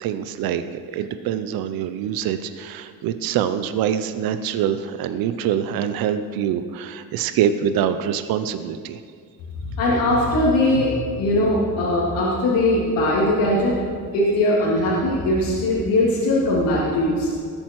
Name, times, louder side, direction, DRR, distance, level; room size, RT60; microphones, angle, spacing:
voice 1, 0.0-0.6 0.9-9.0, right 9 dB, 80° right, 10 dB, 0.8 m, -24 dB
voice 2, 9.6-13.8 14.1-17.3, left 1 dB, 80° left, -6 dB, 3.0 m, -20 dB
19.5 x 8.9 x 4.7 m, 2.2 s
cardioid pair, 145°, 35 cm